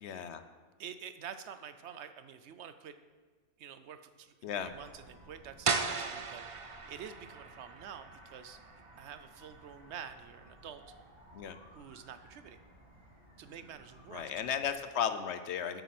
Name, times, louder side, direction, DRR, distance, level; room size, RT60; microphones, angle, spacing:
voice 1, 0.0-0.4 4.4-4.7 11.3-11.6 14.1-15.8, left 8 dB, 70° left, 10 dB, 0.9 m, -35 dB
voice 2, 0.8-3.0 3.6-4.3 4.6-8.6 9.0-10.8 11.7-12.6 13.4-14.3, right 8 dB, 70° right, 11 dB, 0.9 m, -48 dB
sound 1, 4.5-14.7, equal, 20° right, 2.7 m, -58 dB
sound 2, 5.6-11.3, right 5 dB, 45° right, 0.4 m, -38 dB
8.5 x 8.1 x 5.9 m, 1.5 s
omnidirectional pair, 1.3 m